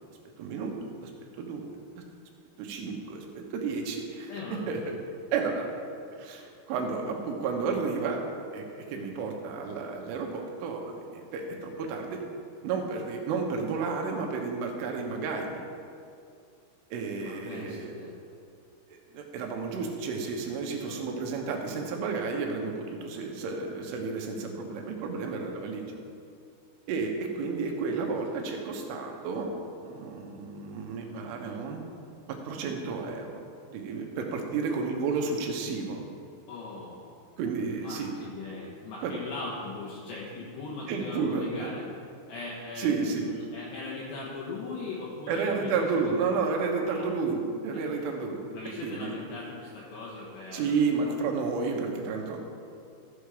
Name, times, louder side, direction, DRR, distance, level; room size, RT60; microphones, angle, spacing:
voice 1, 0.4-0.7 1.0-1.1 1.4-1.7 2.0-2.1 2.6-4.3 4.7-5.0 5.3-5.7 6.2-8.2 8.5-12.2 12.6-15.7 16.9-17.9 18.9-25.9 26.9-31.8 32.5-36.0 37.4-38.1 39.0-39.1 40.9-41.7 42.8-43.3 45.3-48.5 48.8-49.2 50.5-52.4, right 4 dB, 85° right, 2 dB, 3.7 m, -31 dB
voice 2, 4.3-4.7 17.2-18.1 20.7-21.2 36.5-37.1 37.8-41.8 42.3-46.1 46.9-47.1 47.7-48.0 48.5-51.2, left 3 dB, 70° left, -5 dB, 3.3 m, -40 dB
14.5 x 7.1 x 5.0 m, 2.4 s
omnidirectional pair, 5.5 m